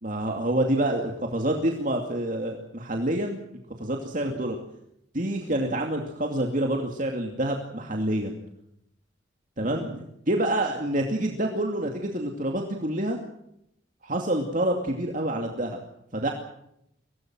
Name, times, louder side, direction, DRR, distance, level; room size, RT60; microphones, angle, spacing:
voice 1, 0.0-3.4 3.8-4.6 5.1-8.4 9.6-13.2 14.0-15.8 16.1-16.3, right 1 dB, 45° right, 2 dB, 2.5 m, -27 dB
24.0 x 18.0 x 7.8 m, 0.77 s
head